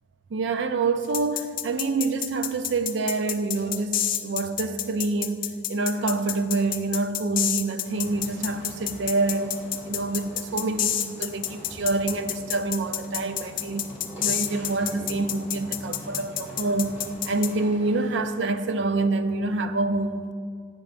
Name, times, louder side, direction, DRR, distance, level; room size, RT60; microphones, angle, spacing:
voice 1, 0.3-13.9 14.2-20.3, right 3 dB, 70° right, 0.4 m, -27 dB
sound 1, 1.1-17.5, left 12 dB, 45° left, 0.3 m, -29 dB
sound 2, 7.8-18.3, equal, 10° right, 2.0 m, -44 dB
8.0 x 5.5 x 5.0 m
head